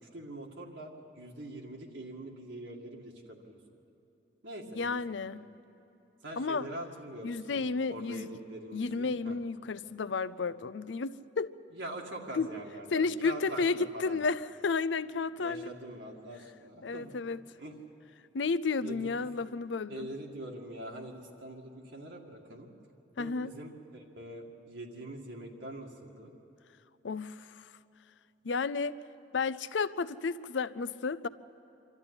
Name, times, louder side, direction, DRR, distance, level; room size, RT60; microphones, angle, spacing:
voice 1, 0.0-3.6 4.4-5.0 6.2-9.4 11.7-14.2 15.4-17.1 17.6-17.8 18.8-19.3 19.9-22.7 23.2-26.3, right 1 dB, 75° right, -1 dB, 2.1 m, -44 dB
voice 2, 4.7-5.5 6.4-6.7 7.2-8.3 8.7-11.6 12.3-12.5 12.9-15.7 16.8-17.4 18.3-20.1 23.2-23.5 27.0-27.7 28.4-28.9 29.3-31.3, left 4 dB, 75° left, 16 dB, 0.5 m, -32 dB
25.5 x 13.0 x 9.8 m, 3.0 s
head